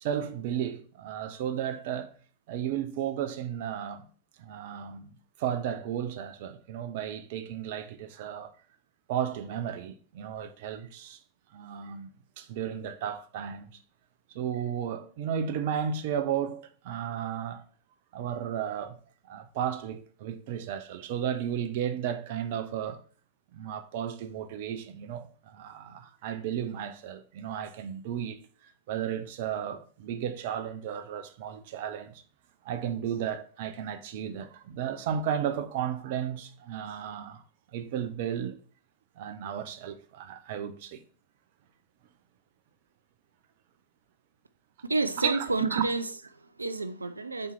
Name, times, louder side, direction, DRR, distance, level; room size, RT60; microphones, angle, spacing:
voice 1, 0.0-2.2 2.5-4.0 4.4-5.1 5.4-8.5 9.1-11.2 11.5-12.1 12.4-13.7 14.3-17.6 18.1-19.0 19.3-23.0 23.5-28.4 28.9-32.2 32.6-37.4 37.7-38.6 39.2-41.0 45.2-45.8, right 9 dB, 50° right, 0.7 m, -34 dB
voice 2, 44.9-47.5, right 3 dB, 80° right, 0.4 m, -30 dB
7.3 x 4.5 x 4.2 m
figure-of-eight pair, 90°, 0 cm